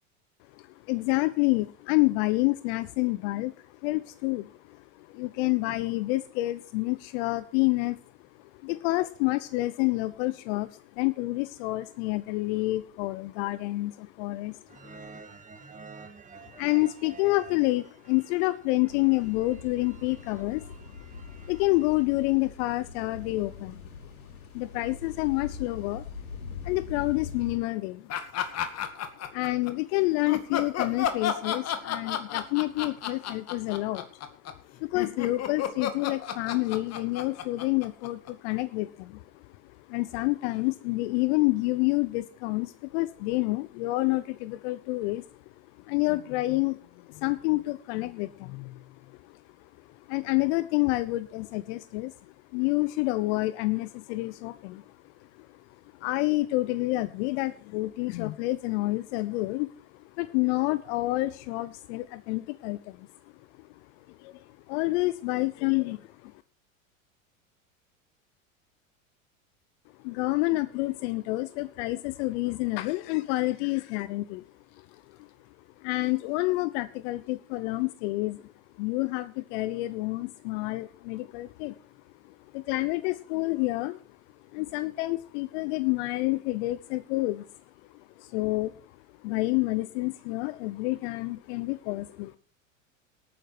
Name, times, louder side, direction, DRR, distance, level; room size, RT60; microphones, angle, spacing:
voice 1, 0.5-15.1 16.4-21.1 21.5-23.8 24.5-26.0 26.6-28.1 29.3-45.4 45.8-55.6 55.9-63.1 63.6-63.7 64.1-66.3 70.0-74.4 74.7-75.3 75.8-78.5 78.8-81.8 82.2-84.0 84.5-87.5 87.9-88.9 89.2-92.4, left 20 dB, 55° left, 15 dB, 0.9 m, -29 dB
sound 1, 14.7-22.0, right 5 dB, 20° right, 2.0 m, -50 dB
sound 2, 18.9-27.6, left 5 dB, 90° left, 4.8 m, -43 dB
sound 3, 28.1-29.7 30.3-38.5, left 9 dB, 40° left, 2.3 m, -32 dB
18.5 x 9.6 x 4.4 m, 0.43 s
hypercardioid pair, 90°, 41 cm